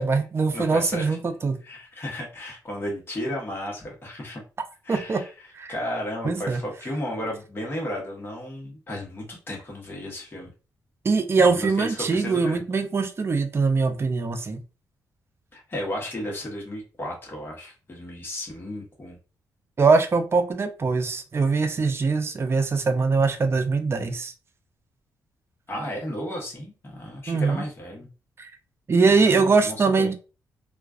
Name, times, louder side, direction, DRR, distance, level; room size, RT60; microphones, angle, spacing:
voice 1, 0.0-1.6 4.9-5.2 5.5-5.7 6.2-6.6 11.0-14.6 19.8-24.3 27.3-27.6 28.4-28.5 28.9-30.1, right 4 dB, 35° right, 7 dB, 0.5 m, -22 dB
voice 2, 0.5-1.2 1.6-4.4 4.8-5.3 5.7-10.5 11.4-12.6 15.5-19.2 25.7-28.1 29.1-30.1, left 1 dB, 30° left, -2 dB, 1.0 m, -34 dB
2.4 x 2.2 x 2.3 m, 0.33 s
cardioid pair, 70°, 7 cm